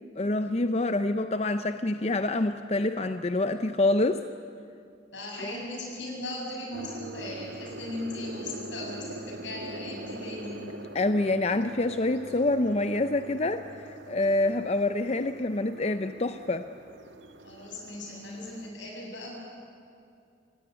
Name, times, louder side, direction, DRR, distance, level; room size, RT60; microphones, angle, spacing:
voice 1, 0.2-4.2 5.4-5.5 10.9-16.7, left 2 dB, 35° left, 9 dB, 0.6 m, -26 dB
voice 2, 5.1-10.6 17.4-19.4, left 1 dB, 85° left, -1 dB, 7.9 m, -38 dB
sound 1, 6.7-18.7, right 1 dB, 90° right, 1.7 m, -43 dB
27.0 x 16.5 x 9.6 m, 2.5 s
head